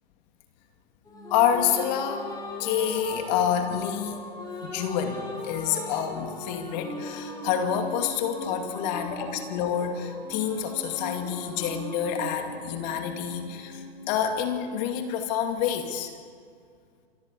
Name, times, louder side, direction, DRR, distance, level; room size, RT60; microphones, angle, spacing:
sound 1, 1.1-14.7, left 1 dB, 10° left, 5.4 m, -39 dB
voice 1, 1.3-2.3 2.6-4.2 4.6-16.1, left 8 dB, 45° left, 5 dB, 2.3 m, -28 dB
26.5 x 12.0 x 8.4 m, 2.1 s
hypercardioid pair, 125°, 31 cm